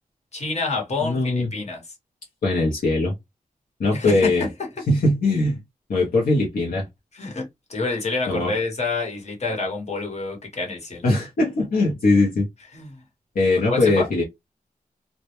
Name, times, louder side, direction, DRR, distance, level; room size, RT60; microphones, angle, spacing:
voice 1, 0.3-1.8 3.9-4.3 7.1-7.4 7.7-11.1 12.7-12.9 13.7-14.1, left 3 dB, 50° left, 1.0 m, -27 dB
voice 2, 1.0-1.5 2.4-3.1 3.8-4.4 4.9-5.6 5.9-6.9 8.3-8.5 11.0-12.5 13.4-14.2, left 2 dB, 70° left, 0.6 m, -20 dB
2.1 x 2.0 x 2.9 m
wide cardioid pair, 130°, 15 cm